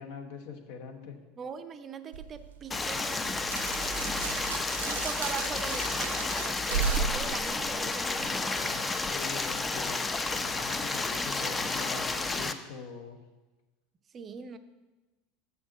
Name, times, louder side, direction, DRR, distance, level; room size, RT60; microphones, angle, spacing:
voice 1, 0.0-1.2 8.1-10.0 10.3-13.2, left 5 dB, 60° left, 3 dB, 1.1 m, -43 dB
voice 2, 1.4-3.3 4.8-8.6 14.1-14.6, right 6 dB, 30° right, 10 dB, 0.5 m, -41 dB
sound 1, 2.1-8.4, right 6 dB, 75° right, 0.6 m, -35 dB
Stream, 2.7-12.5, left 3 dB, 15° left, 0.5 m, -31 dB
7.0 x 6.1 x 6.1 m, 1.1 s
figure-of-eight pair, 75°, 0 cm